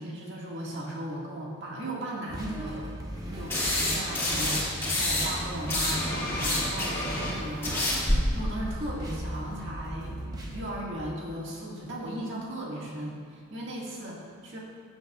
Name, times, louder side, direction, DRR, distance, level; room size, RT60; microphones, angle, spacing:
voice 1, 0.0-2.9 3.2-10.2 10.5-14.6, right 1 dB, 60° right, -4 dB, 1.8 m, -36 dB
sound 1, 2.3-10.7, equal, 20° right, 0.9 m, -38 dB
sound 2, 3.5-5.3 5.5-8.1, left 1 dB, 10° left, 2.2 m, -27 dB
13.5 x 7.9 x 2.4 m, 2.1 s
head